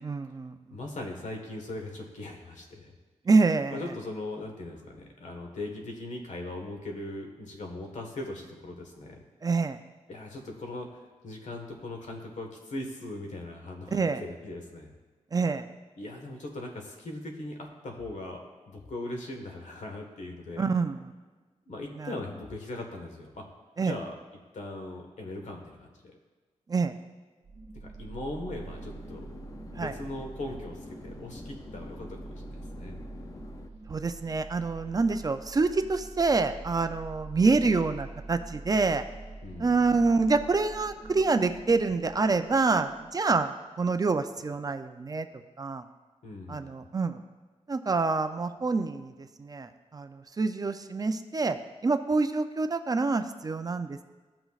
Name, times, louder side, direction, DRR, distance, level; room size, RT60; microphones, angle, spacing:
voice 1, 0.0-0.8 3.3-3.8 9.4-9.8 13.9-14.2 15.3-15.7 20.6-21.1 22.0-22.1 23.8-24.0 26.7-26.9 29.7-30.0 33.9-39.0 39.6-45.3 45.6-45.8 46.5-47.2 47.7-54.0, right 4 dB, 30° right, 8 dB, 0.4 m, -27 dB
voice 2, 0.7-2.9 3.7-9.2 10.1-14.9 16.0-20.6 21.7-23.4 23.8-24.2 24.5-26.2 27.8-29.3 29.8-33.0 39.4-40.0 46.2-46.8, left 2 dB, 80° left, 2 dB, 1.4 m, -39 dB
sound 1, 27.4-43.4, right 2 dB, 55° right, 1.4 m, -45 dB
sound 2, 28.6-33.7, left 3 dB, 25° left, 0.5 m, -47 dB
16.0 x 6.0 x 2.4 m, 1.3 s
wide cardioid pair, 140°, 12 cm